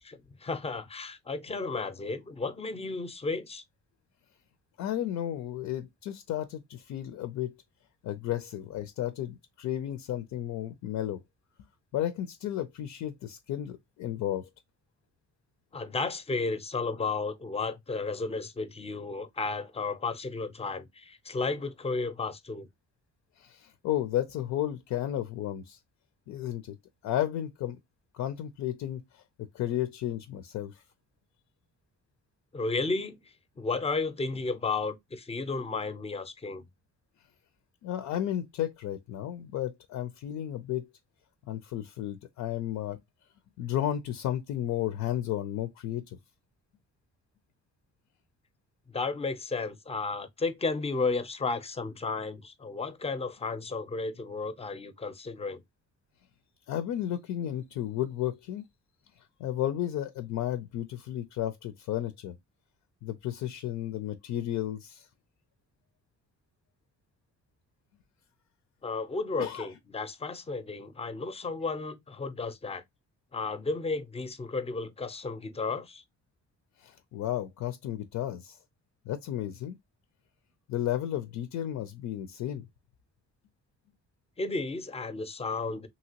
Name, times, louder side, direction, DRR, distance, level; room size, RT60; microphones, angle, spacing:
voice 1, 0.0-3.6 15.7-22.7 32.5-33.2 33.6-36.7 48.9-55.6 68.8-72.8 73.3-76.0 84.4-85.9, left 3 dB, 20° left, 0.5 m, -33 dB
voice 2, 4.8-7.5 8.0-11.2 11.9-14.5 23.4-25.8 26.3-26.8 27.0-27.8 28.1-29.2 29.5-30.8 37.8-40.9 41.5-43.0 43.6-46.2 56.7-58.7 59.4-62.3 63.0-65.1 69.4-69.7 76.8-78.6 79.1-79.8 80.7-82.6, left 12 dB, 75° left, 0.5 m, -33 dB
2.8 x 2.8 x 2.8 m
cardioid pair, 90°, 30 cm